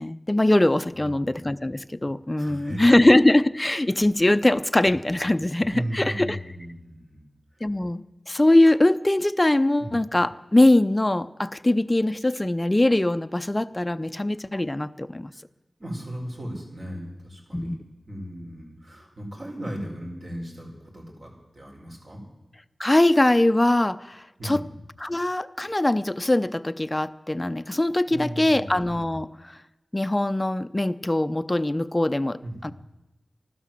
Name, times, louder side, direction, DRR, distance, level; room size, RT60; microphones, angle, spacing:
voice 1, 0.0-6.4 7.6-15.3 17.5-17.8 22.8-24.6 25.0-29.5 29.9-32.7, left 1 dB, 20° left, 12 dB, 0.6 m, -22 dB
voice 2, 0.9-1.3 2.4-2.8 5.7-7.2 9.8-9.9 15.8-17.8 18.1-22.2 24.4-24.7 28.1-28.7 32.4-32.7, equal, 50° right, -1 dB, 5.7 m, -36 dB
15.0 x 12.5 x 7.6 m, 1.0 s
wide cardioid pair, 70°, 0 cm